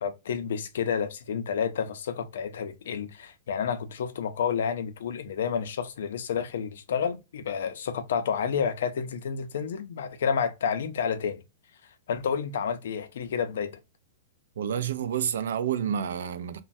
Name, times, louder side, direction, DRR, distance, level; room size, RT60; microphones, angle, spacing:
voice 1, 0.0-11.4 12.1-13.8, left 7 dB, 70° left, 0.5 m, -30 dB
voice 2, 14.6-16.6, right 9 dB, 70° right, 0.4 m, -29 dB
3.1 x 2.2 x 2.6 m
supercardioid pair, 175°, 0 cm